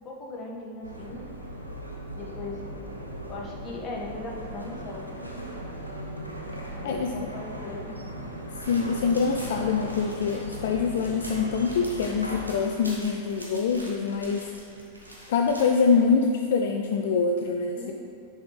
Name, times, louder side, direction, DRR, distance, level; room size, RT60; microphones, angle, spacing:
voice 1, 0.0-1.3 2.1-2.7 3.3-5.1 6.8-8.0 17.7-17.9, left 2 dB, 25° left, -2 dB, 1.4 m, -38 dB
sound 1, 0.8-12.5, equal, 90° left, 0.9 m, -38 dB
sound 2, 8.6-16.0, equal, 85° right, 1.5 m, -45 dB
voice 2, 8.7-14.5 15.3-17.9, left 5 dB, 55° left, 3 dB, 0.4 m, -25 dB
10.0 x 5.6 x 3.2 m, 2.8 s
figure-of-eight pair, 90°, 0 cm